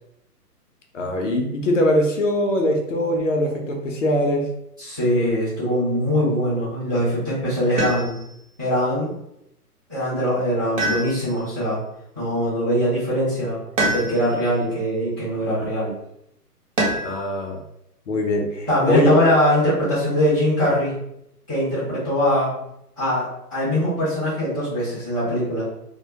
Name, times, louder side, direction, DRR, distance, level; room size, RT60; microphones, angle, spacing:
voice 1, 0.9-4.5 17.0-17.6 18.1-19.2, left 1 dB, 50° left, 2 dB, 0.6 m, -21 dB
voice 2, 4.8-8.2 8.6-9.1 9.9-11.8 12.2-15.9 18.7-20.9 21.5-22.5 23.0-25.7, equal, 15° right, -14 dB, 0.4 m, -22 dB
sound 1, 7.8-8.4 10.8-11.6 13.8-14.5 16.8-17.3 19.0-19.6, right 1 dB, 55° right, 0.8 m, -26 dB
2.1 x 2.1 x 2.8 m, 0.79 s
hypercardioid pair, 145°, 48 cm